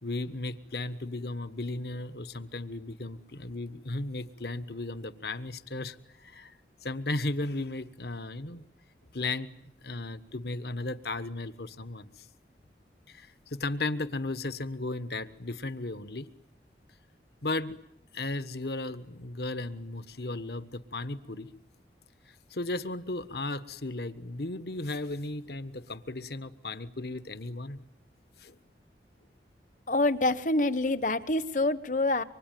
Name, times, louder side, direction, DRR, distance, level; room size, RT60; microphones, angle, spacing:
voice 1, 0.0-6.0 6.2-6.5 6.8-8.6 9.1-9.5 9.8-12.3 13.1-16.3 17.4-17.8 18.1-21.5 22.5-27.8 28.4-28.6, left 2 dB, 65° left, 13 dB, 1.3 m, -35 dB
voice 2, 29.9-32.2, left 2 dB, 45° left, 14 dB, 1.1 m, -26 dB
25.5 x 25.5 x 9.3 m, 0.79 s
head